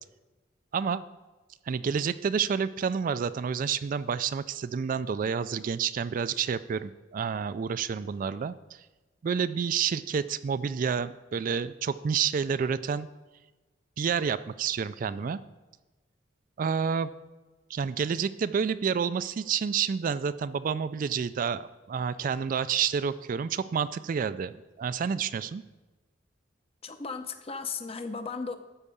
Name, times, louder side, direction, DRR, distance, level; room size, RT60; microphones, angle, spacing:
voice 1, 1.7-8.8 9.2-13.1 14.0-15.4 16.6-17.1 17.7-25.6, right 6 dB, 45° right, 15 dB, 0.3 m, -29 dB
voice 2, 26.8-28.6, left 4 dB, 30° left, 9 dB, 0.7 m, -35 dB
12.5 x 4.7 x 6.9 m, 1.2 s
head